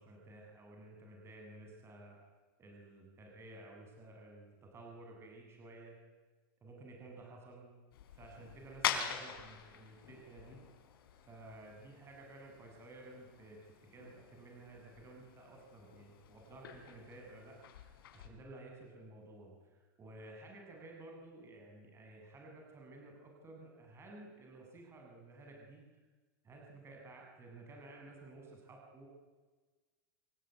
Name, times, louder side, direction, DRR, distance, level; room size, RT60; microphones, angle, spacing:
voice 1, 0.0-2.2 2.6-6.0 6.6-7.7 8.1-10.6 11.2-13.6 13.9-17.6 18.1-26.0 26.4-29.1, right 2 dB, 20° right, 0 dB, 7.8 m, -53 dB
sound 1, 7.9-18.3, left 9 dB, 90° left, 4.7 m, -45 dB
27.0 x 22.0 x 9.6 m, 1.3 s
supercardioid pair, 140°, 12 cm